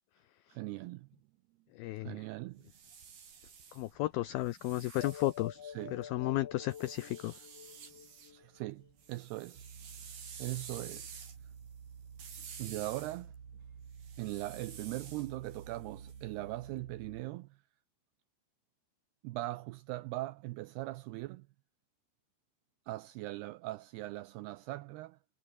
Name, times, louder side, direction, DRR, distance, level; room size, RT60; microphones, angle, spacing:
voice 1, 0.5-1.2 2.0-2.6 5.6-6.0 8.3-9.7 10.0-11.5 12.6-13.3 14.2-17.6 19.2-21.5 22.9-25.2, right 18 dB, 85° right, 2.3 m, -40 dB
voice 2, 1.8-2.1 3.7-5.6 5.9-7.3, left 17 dB, 85° left, 2.1 m, -33 dB
sound 1, 2.5-6.0 6.7-8.3 8.7-16.6, right 7 dB, 60° right, 6.4 m, -51 dB
sound 2, 5.0-8.9, left 8 dB, 50° left, 2.0 m, -48 dB
sound 3, 9.5-17.2, right 7 dB, 45° right, 3.8 m, -51 dB
omnidirectional pair, 5.3 m